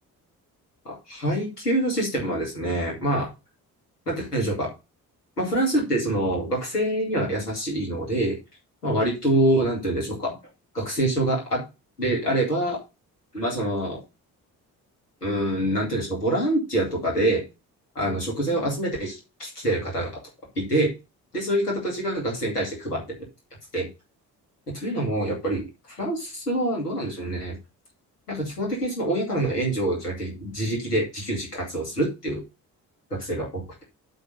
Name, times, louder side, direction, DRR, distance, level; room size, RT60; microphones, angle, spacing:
voice 1, 0.8-3.3 4.1-4.7 5.4-8.4 8.8-10.3 10.7-11.6 12.0-12.8 13.3-14.0 15.2-17.4 17.9-20.1 20.6-20.9 21.3-23.0 23.7-23.9 24.7-25.6 26.0-27.6 28.3-32.4 33.1-33.8, right 1 dB, 90° left, -2 dB, 2.5 m, -25 dB
8.2 x 3.9 x 6.6 m, 0.27 s
figure-of-eight pair, 40°, 46 cm